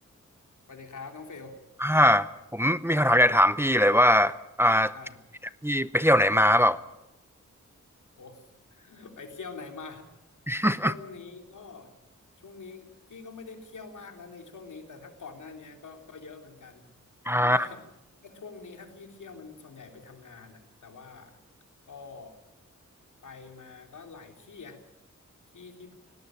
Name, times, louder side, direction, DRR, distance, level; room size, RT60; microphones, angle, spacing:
voice 1, 0.7-1.6 4.9-5.2 8.2-8.4 8.7-10.1 10.8-11.9 12.4-16.8 17.4-17.8 18.2-21.4 21.9-22.3 23.2-24.8 25.5-25.9, left 4 dB, 80° left, 4 dB, 3.3 m, -45 dB
voice 2, 1.8-4.9 5.6-6.8 10.5-10.9 17.3-17.7, equal, 10° right, 14 dB, 0.7 m, -21 dB
18.0 x 18.0 x 9.0 m, 0.91 s
wide cardioid pair, 90°, 30 cm